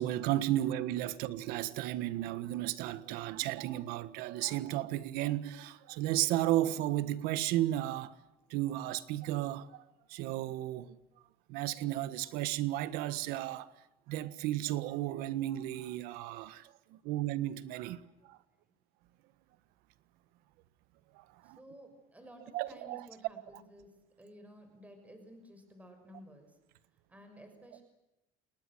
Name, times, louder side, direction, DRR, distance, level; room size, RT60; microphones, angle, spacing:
voice 1, 0.0-8.2 8.5-9.8 10.1-11.0 11.5-13.7 14.1-18.0 18.3-18.4 21.2-21.6 22.5-23.0, right 14 dB, 85° right, 1.5 m, -34 dB
voice 2, 21.4-23.9 24.2-26.6 27.1-27.8, equal, 10° right, 6.3 m, -54 dB
29.0 x 20.0 x 7.9 m
cardioid pair, 135°, 15 cm